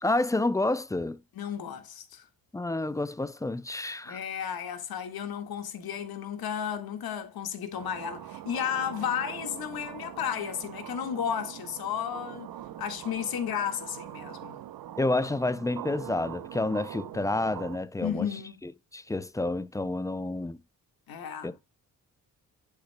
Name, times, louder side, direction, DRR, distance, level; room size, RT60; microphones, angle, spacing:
voice 1, 0.0-1.2 2.5-4.2 15.0-18.3 18.6-20.6 21.4-21.6, left 2 dB, 10° left, 0.3 m, -29 dB
voice 2, 1.3-2.3 4.1-12.5 12.8-14.6 18.0-18.6 21.1-21.5, left 8 dB, 80° left, 1.8 m, -33 dB
sound 1, 7.7-17.8, right 12 dB, 75° right, 0.8 m, -43 dB
11.0 x 6.7 x 2.2 m
wide cardioid pair, 145°, 36 cm